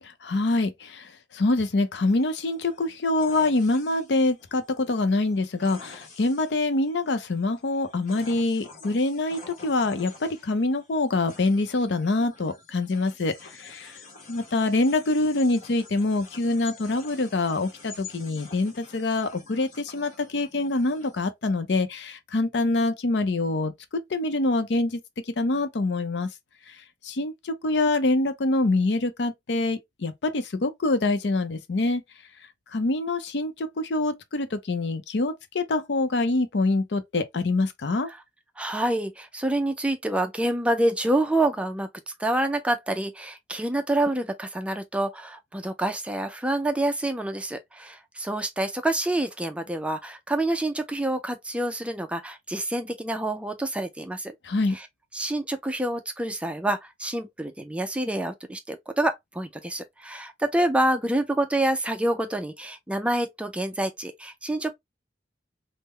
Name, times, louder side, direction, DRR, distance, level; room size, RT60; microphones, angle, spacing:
voice 1, 0.2-14.0 14.3-25.0 25.4-26.3 26.7-26.8 27.0-32.0 32.7-38.1 54.4-54.8, left 2 dB, 70° left, 0.6 m, -25 dB
sound 1, 2.1-21.3, left 4 dB, 45° left, 1.0 m, -48 dB
voice 2, 38.6-41.9 42.2-54.3 54.7-54.9 55.1-64.7, right 1 dB, 5° right, 0.4 m, -27 dB
3.6 x 2.0 x 3.1 m
head